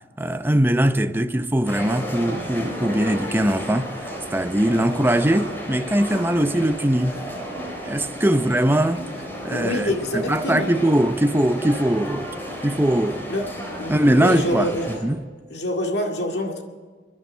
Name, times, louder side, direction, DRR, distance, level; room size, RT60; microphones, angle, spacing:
voice 1, 0.2-3.9 4.3-7.2 7.8-9.0 9.4-12.3 12.6-13.3 13.9-14.7 15.0-15.2, right 1 dB, 10° right, 0.6 m, -21 dB
sound 1, 1.7-15.0, equal, 15° left, 3.9 m, -33 dB
voice 2, 9.5-10.7 13.3-13.5 13.8-14.9 15.5-16.6, left 1 dB, 70° left, 2.2 m, -26 dB
23.5 x 11.0 x 4.5 m
head